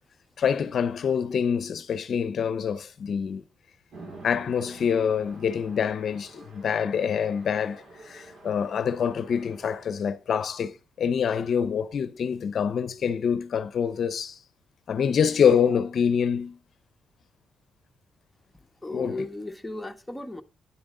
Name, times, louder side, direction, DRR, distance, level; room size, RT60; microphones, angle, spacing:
voice 1, 0.4-3.4 4.2-14.4 14.9-16.6 18.9-19.2, left 7 dB, 60° left, 0.7 m, -26 dB
Chatter / Traffic noise roadway noise / Train, 3.9-9.9, right 2 dB, 65° right, 5.1 m, -48 dB
voice 2, 18.5-20.4, left 2 dB, 5° left, 1.3 m, -36 dB
9.6 x 8.5 x 3.8 m
cardioid pair, 85°, 0 cm